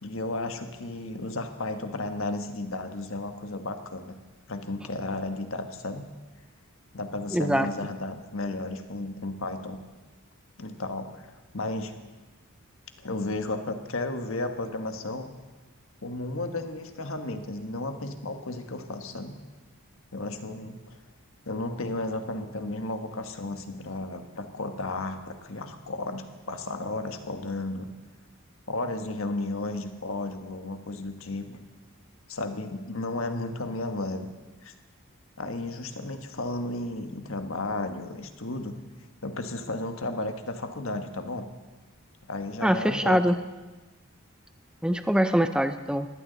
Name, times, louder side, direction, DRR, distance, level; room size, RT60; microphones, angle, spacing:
voice 1, 0.0-4.1 4.5-6.1 6.9-9.8 10.6-11.3 11.5-11.9 13.0-15.3 16.0-19.4 20.1-21.0 21.4-27.9 28.7-31.7 32.3-34.3 34.6-34.7 35.4-38.7 39.2-41.4 42.3-43.2, left 2 dB, 65° left, 6 dB, 1.4 m, -33 dB
voice 2, 7.3-7.7 42.6-43.3 44.8-46.1, equal, 5° right, 9 dB, 0.6 m, -23 dB
21.0 x 16.0 x 4.0 m, 1.2 s
head